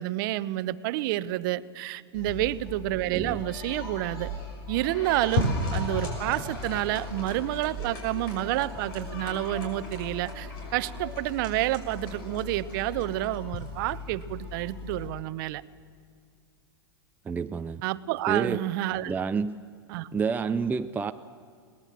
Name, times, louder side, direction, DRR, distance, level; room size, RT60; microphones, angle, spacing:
voice 1, 0.0-4.3 4.7-15.6 17.8-19.1 19.9-20.1, right 15 dB, 55° right, 17 dB, 0.7 m, -29 dB
sound 1, 2.1-15.1, left 2 dB, 65° left, 6.3 m, -36 dB
voice 2, 3.1-3.4 17.2-17.8 18.3-18.7 19.1-19.6 20.1-21.1, right 5 dB, 15° right, 9 dB, 0.5 m, -29 dB
sound 2, 4.2-4.7 5.8-5.9 6.3-6.5 7.7-8.6, right 10 dB, 80° right, 1.1 m, -41 dB
22.0 x 18.5 x 7.4 m, 2.2 s
hypercardioid pair, 110°, 13 cm